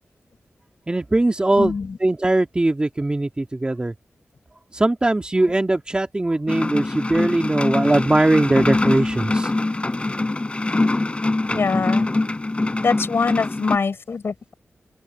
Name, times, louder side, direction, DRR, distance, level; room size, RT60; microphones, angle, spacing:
voice 1, 0.9-1.7 2.0-3.9 4.7-9.5, right 2 dB, 20° right, 2.4 m, -20 dB
voice 2, 1.6-2.0 11.5-12.1 12.8-14.5, left 5 dB, 60° left, 4.2 m, -23 dB
sound 1, 6.5-13.8, left 2 dB, 25° left, 4.8 m, -23 dB
open air
wide cardioid pair, 120°, 4 cm